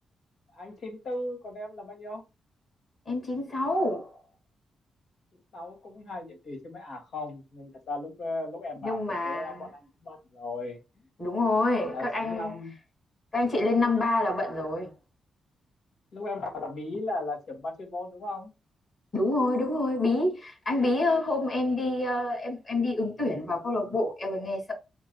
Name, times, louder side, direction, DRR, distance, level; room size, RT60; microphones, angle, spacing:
voice 1, 0.5-2.2 5.3-10.8 11.8-12.7 16.1-18.5, left 2 dB, 75° left, 2.2 m, -37 dB
voice 2, 3.1-4.2 8.8-9.7 11.2-12.5 13.3-14.9 19.1-24.7, left 2 dB, 40° left, 2.7 m, -27 dB
7.3 x 2.5 x 2.3 m
cardioid pair, 85°, 0 cm